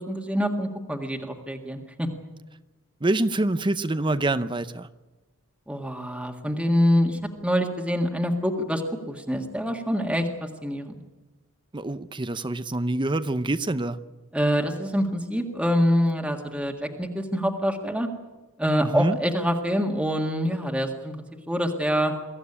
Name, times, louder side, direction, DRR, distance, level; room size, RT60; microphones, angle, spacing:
voice 1, 0.1-2.1 5.7-8.8 9.1-11.0 14.3-18.1 18.6-22.1, equal, 5° right, 2 dB, 1.8 m, -25 dB
voice 2, 3.0-4.9 11.7-14.0 18.8-19.2, right 2 dB, 20° right, 13 dB, 0.7 m, -26 dB
23.0 x 15.0 x 9.9 m, 1.1 s
head